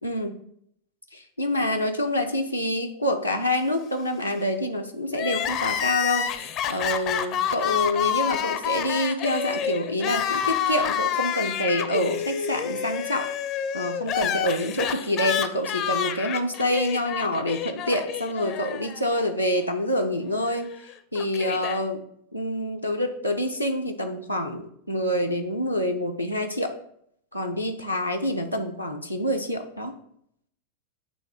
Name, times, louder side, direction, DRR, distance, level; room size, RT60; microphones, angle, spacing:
voice 1, 0.0-0.4 1.1-13.3 13.7-20.7 21.1-22.0 22.3-26.8 27.3-29.9, left 1 dB, 90° left, 1 dB, 0.6 m, -27 dB
Crying sobbing, 5.1-19.3 19.6-19.7 20.6-21.8, left 9 dB, 35° left, 0.5 m, -28 dB
9.1 x 3.2 x 4.4 m, 0.69 s
figure-of-eight pair, 90°, 0 cm